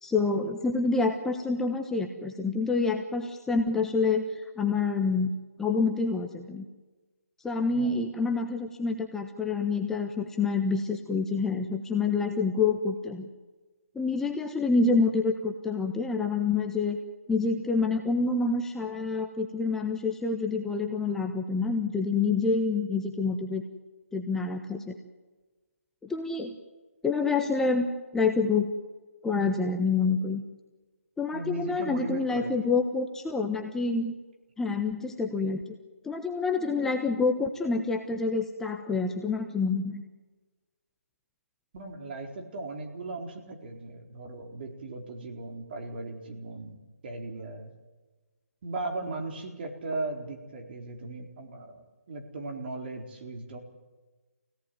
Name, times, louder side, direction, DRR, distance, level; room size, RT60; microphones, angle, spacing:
voice 1, 0.0-5.3 5.6-6.6 7.4-13.3 13.9-17.0 17.3-23.6 24.1-24.9 26.0-26.5 27.0-27.9 28.1-28.7 29.2-30.4 31.2-34.2 34.6-35.7 36.0-40.0, left 4 dB, 5° left, 3 dB, 1.2 m, -27 dB
voice 2, 7.7-8.0 31.3-32.5 41.7-47.7 48.6-53.6, right 2 dB, 40° right, 3 dB, 4.4 m, -37 dB
27.0 x 17.5 x 9.3 m, 1.3 s
figure-of-eight pair, 150°, 8 cm